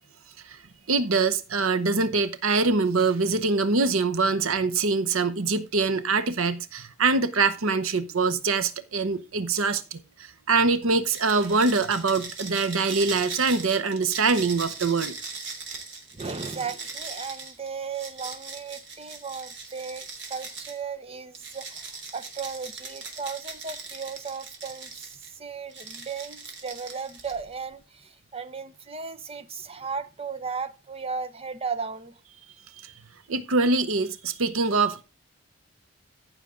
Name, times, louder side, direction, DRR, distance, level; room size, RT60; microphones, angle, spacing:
voice 1, 0.9-10.0 10.5-15.1 32.8-32.9 33.3-35.0, right 4 dB, 80° right, 0.9 m, -24 dB
sound 1, 11.1-20.8 21.4-25.3 25.7-27.5, right 4 dB, 55° right, 3.3 m, -39 dB
voice 2, 16.1-32.2, right 5 dB, 30° right, 0.8 m, -36 dB
15.0 x 6.4 x 3.7 m
head